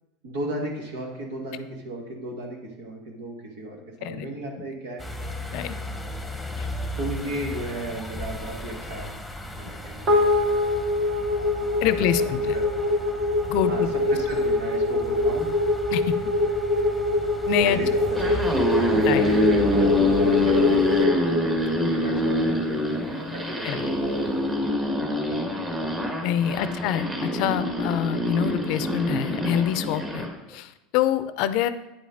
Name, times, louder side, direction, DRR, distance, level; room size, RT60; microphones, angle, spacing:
voice 1, 0.2-5.0 7.0-9.2 9.6-10.4 12.0-12.1 12.5-12.7 13.7-15.5 17.6-18.4 18.7-21.4 21.9-24.5 25.3-25.8 26.4-26.6, right 1 dB, 80° right, 0 dB, 1.9 m, -35 dB
sound 1, 5.0-21.1, left 1 dB, ahead, 1.1 m, -36 dB
sound 2, 10.1-22.6, left 2 dB, 45° right, 2.2 m, -24 dB
voice 2, 11.8-12.4 13.4-13.9 15.9-16.0 17.5-17.8 19.1-19.3 23.6-23.9 26.2-31.7, left 10 dB, 65° left, 13 dB, 0.5 m, -26 dB
sound 3, 18.0-30.3, left 1 dB, 20° right, 1.4 m, -25 dB
9.4 x 5.2 x 3.8 m, 0.94 s
supercardioid pair, 100°, 0 cm